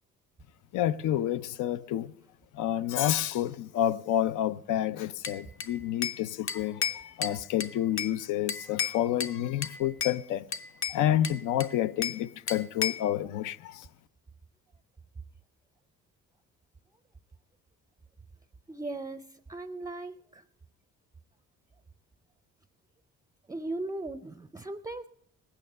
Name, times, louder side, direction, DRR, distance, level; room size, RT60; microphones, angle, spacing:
voice 1, 0.7-2.1 2.5-10.4 10.9-13.9, left 12 dB, 85° left, 0.5 m, -29 dB
Bell / Glass, 5.2-6.2 6.5-8.2 8.5-9.4 9.6-10.2 10.5-12.2 12.5-13.1, left 7 dB, 45° left, 0.7 m, -33 dB
voice 2, 18.7-20.4 23.5-25.1, right 2 dB, 10° right, 0.4 m, -38 dB
19.0 x 8.9 x 5.3 m
cardioid pair, 90°, 30 cm